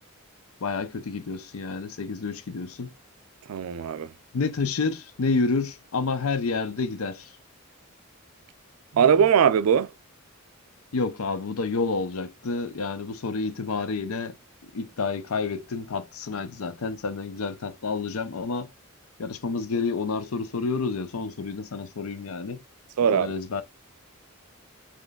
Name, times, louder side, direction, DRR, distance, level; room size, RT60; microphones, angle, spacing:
voice 1, 0.6-2.9 4.3-7.3 10.9-14.4 14.7-18.7 19.2-22.6 23.1-23.6, left 4 dB, 75° left, 0.6 m, -29 dB
voice 2, 3.5-4.1 8.9-9.9 23.0-23.3, right 7 dB, 85° right, 0.4 m, -20 dB
5.0 x 3.0 x 2.3 m
head